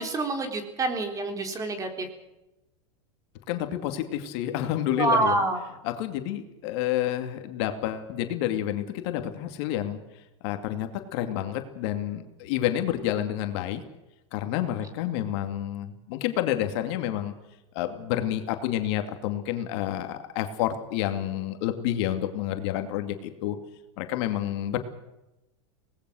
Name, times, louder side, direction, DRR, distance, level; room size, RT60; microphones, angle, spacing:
voice 1, 0.0-2.1 5.0-5.6, right 2 dB, 20° right, 5 dB, 4.0 m, -26 dB
voice 2, 3.5-5.4 5.8-10.0 10.4-13.8 14.3-17.3 17.7-23.6 24.0-24.8, left 12 dB, 60° left, 7 dB, 2.5 m, -29 dB
24.5 x 19.5 x 6.4 m, 0.96 s
supercardioid pair, 125°, 16 cm